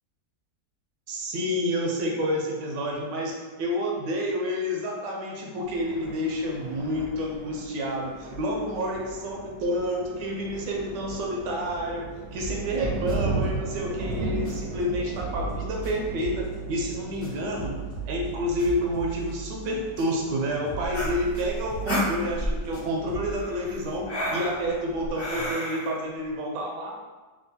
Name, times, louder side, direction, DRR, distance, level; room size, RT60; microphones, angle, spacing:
voice 1, 1.1-17.8 18.1-26.9, equal, 85° right, -1 dB, 1.3 m, -29 dB
Thunder, 5.6-25.4, right 2 dB, 70° right, 0.8 m, -37 dB
sound 1, 12.4-14.9 15.1-20.4 20.7-23.5, right 7 dB, 70° left, 1.3 m, -39 dB
sound 2, 20.8-22.7 23.3-26.0, equal, 20° left, 0.4 m, -30 dB
3.5 x 2.2 x 2.7 m, 1.3 s
omnidirectional pair, 1.8 m